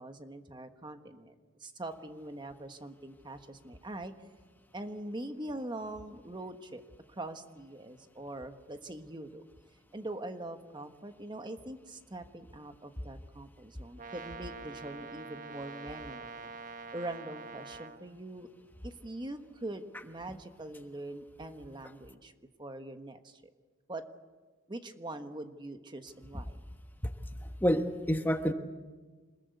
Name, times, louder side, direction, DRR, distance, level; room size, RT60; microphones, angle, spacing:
voice 1, 0.0-1.3 1.6-4.1 4.7-6.8 7.1-9.4 9.9-16.5 16.9-18.5 18.8-22.3 22.6-23.4 23.9-24.0 24.7-26.6, right 1 dB, 25° right, 7 dB, 1.3 m, -43 dB
Brass instrument, 14.0-18.0, right 4 dB, 45° right, 1.4 m, -45 dB
voice 2, 27.4-28.5, equal, 10° left, 6 dB, 1.2 m, -28 dB
26.5 x 21.0 x 8.3 m, 1.3 s
head